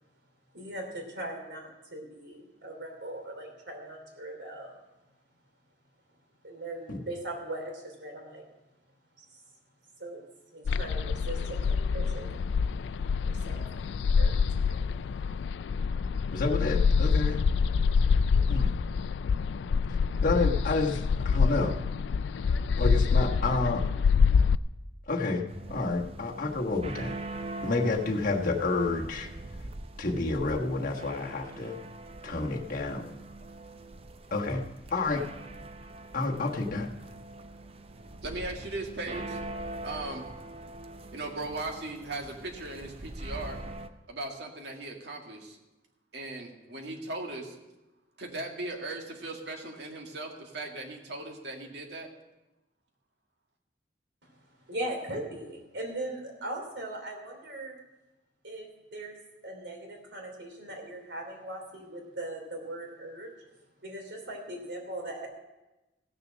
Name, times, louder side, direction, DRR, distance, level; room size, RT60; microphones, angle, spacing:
voice 1, 0.5-4.8 6.4-8.4 9.2-9.3 10.0-10.2 10.5-12.3 13.2-13.7 14.2-14.4 14.7-15.0 54.2-54.3 54.7-57.8 58.4-59.2 59.4-63.3 63.8-65.3, right 1 dB, 85° right, 1 dB, 3.1 m, -39 dB
sound 1, 10.6-24.5, left 5 dB, 80° left, 0.3 m, -26 dB
voice 2, 16.3-17.5 18.5-18.7 20.2-21.8 22.8-23.8 25.1-27.2 27.6-29.3 30.0-31.8 32.2-33.2 34.3-35.2 36.1-36.9, left 3 dB, 50° left, 0 dB, 1.3 m, -29 dB
sound 2, 25.5-43.9, right 2 dB, 35° right, 0.6 m, -43 dB
voice 3, 38.2-39.4 39.8-40.5 41.1-43.6 44.1-45.6 46.1-47.6 48.2-52.1, right 2 dB, 65° right, 2 dB, 1.9 m, -38 dB
16.0 x 6.9 x 6.3 m, 1.0 s
head